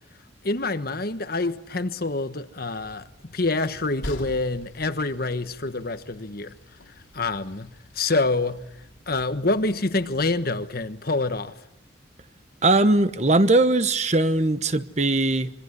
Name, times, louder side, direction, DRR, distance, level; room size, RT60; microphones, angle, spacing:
voice 1, 0.4-6.5 7.1-7.7 7.9-8.6 9.1-11.5, left 3 dB, 50° left, 1.3 m, -26 dB
Train, 2.8-11.4, left 1 dB, 85° left, 2.9 m, -45 dB
voice 2, 12.6-15.5, right 2 dB, 35° right, 1.1 m, -20 dB
26.0 x 23.5 x 9.8 m
head